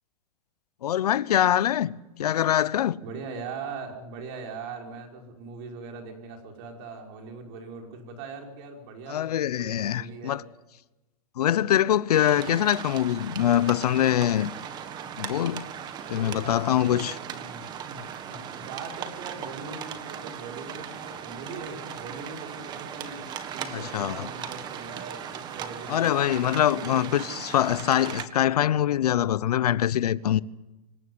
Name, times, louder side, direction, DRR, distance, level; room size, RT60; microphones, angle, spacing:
voice 1, 0.8-3.0 9.1-10.4 11.4-14.5 15.2-15.7 16.1-17.1 23.7-24.3 25.9-30.4, left 11 dB, 85° left, 0.9 m, -24 dB
voice 2, 3.0-9.3 9.6-10.4 16.0-23.3 23.5-27.4, right 4 dB, 40° right, 5.4 m, -41 dB
sound 1, 12.1-28.3, right 8 dB, 20° right, 1.6 m, -38 dB
26.0 x 14.5 x 9.6 m
supercardioid pair, 160°, 20 cm